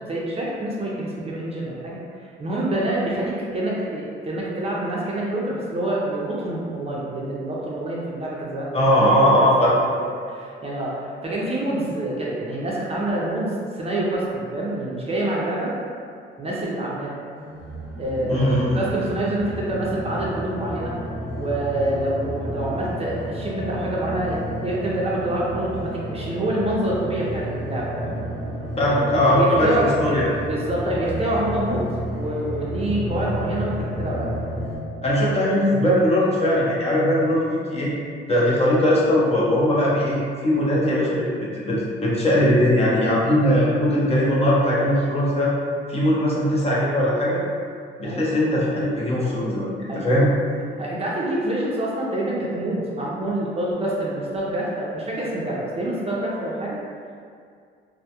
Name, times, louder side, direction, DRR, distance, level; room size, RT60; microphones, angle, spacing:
voice 1, 0.0-2.0 2.4-8.8 9.4-9.5 10.3-15.7 16.4-17.1 18.0-20.9 21.4-28.2 29.1-30.0 30.5-31.9 32.2-34.4 38.0-38.1 48.0-48.4 49.9-50.0 50.8-56.8, right 1 dB, 30° right, -5 dB, 0.5 m, -26 dB
voice 2, 8.7-9.7 18.3-18.8 28.8-30.3 35.0-37.9 38.3-45.5 45.9-47.4 48.0-50.3, equal, 30° left, -6 dB, 0.6 m, -20 dB
sound 1, 17.3-34.8, equal, 5° right, 0.8 m, -31 dB
2.1 x 2.1 x 2.8 m, 2.2 s
cardioid pair, 90°, 20 cm